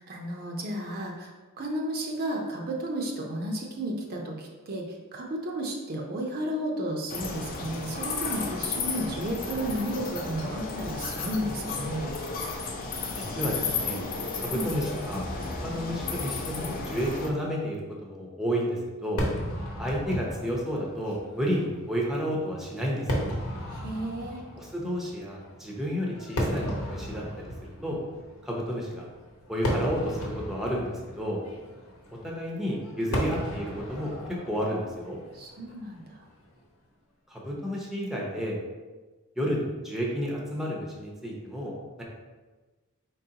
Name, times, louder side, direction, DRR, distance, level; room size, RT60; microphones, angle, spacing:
voice 1, 0.0-12.1 14.5-14.7 23.7-24.4 35.3-36.2, right 1 dB, 45° right, 1 dB, 0.6 m, -33 dB
sound 1, 7.1-17.3, left 4 dB, 40° left, 0.5 m, -33 dB
voice 2, 13.1-14.0 14.4-15.2 15.6-19.2 19.8-23.1 24.6-27.5 27.8-28.0 28.4-29.0 29.5-31.4 32.2-34.1 34.5-35.2 37.3-38.6 39.4-41.7 42.0-42.1, equal, ahead, -3 dB, 0.6 m, -31 dB
Fireworks, 19.2-36.5, equal, 70° left, 1.0 m, -36 dB
4.7 x 3.8 x 2.8 m, 1.3 s
head